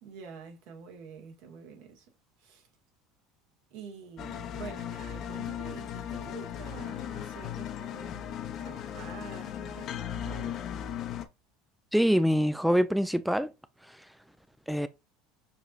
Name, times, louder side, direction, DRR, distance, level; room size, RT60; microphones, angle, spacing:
voice 1, 0.0-2.1 2.4-2.7 3.7-10.6, right 6 dB, 70° right, 1.7 m, -47 dB
sound 1, 4.2-11.3, left 9 dB, 50° left, 0.7 m, -37 dB
voice 2, 11.9-13.5 13.9-14.0 14.7-14.9, equal, ahead, 0.3 m, -25 dB
6.6 x 2.9 x 2.4 m
supercardioid pair, 100°, 0 cm